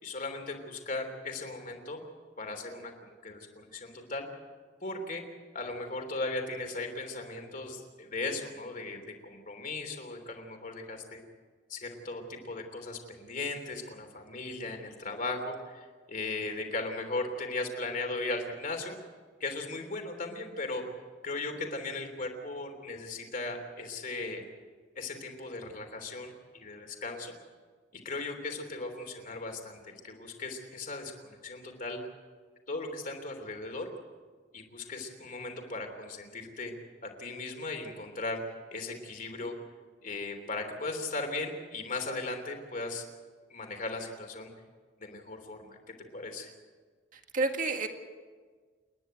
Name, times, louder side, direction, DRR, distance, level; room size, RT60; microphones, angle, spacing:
voice 1, 0.0-2.0 2.4-4.3 4.8-5.2 5.5-11.2 11.7-18.9 19.4-20.8 21.2-24.4 24.9-27.3 27.9-32.0 32.7-33.9 34.5-36.7 37.0-38.4 38.7-39.5 40.0-43.0 43.5-44.5 45.0-45.8 46.1-46.5, left 2 dB, 45° left, 4 dB, 3.2 m, -37 dB
voice 2, 47.1-47.9, right 3 dB, 45° right, 5 dB, 1.9 m, -30 dB
29.0 x 10.5 x 9.2 m, 1.5 s
head